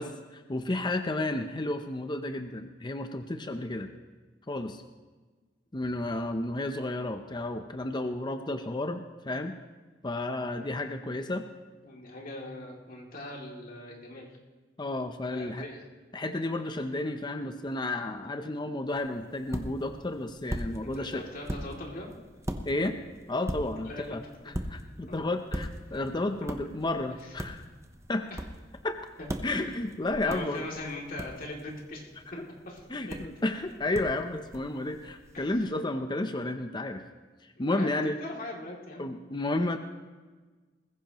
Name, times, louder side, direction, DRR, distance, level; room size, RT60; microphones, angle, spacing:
voice 1, 0.0-3.9 4.5-4.8 5.7-9.5 10.0-11.4 14.8-15.7 16.1-21.3 22.6-23.0 23.3-27.6 28.1-28.2 28.8-29.0 29.4-30.7 32.4-32.5 32.9-37.0 37.4-38.2 39.0-39.8, left 2 dB, 25° left, 7 dB, 0.7 m, -32 dB
voice 2, 11.8-14.3 15.3-15.8 20.9-22.1 23.8-24.0 25.1-25.2 28.3-28.4 29.4-29.5 30.2-32.1 32.6-32.8 35.3-35.5 37.6-37.9 38.2-39.1, left 1 dB, 50° left, -2 dB, 2.8 m, -41 dB
sound 1, 18.9-35.6, equal, 15° right, 0.9 m, -41 dB
20.5 x 15.0 x 3.0 m, 1.3 s
head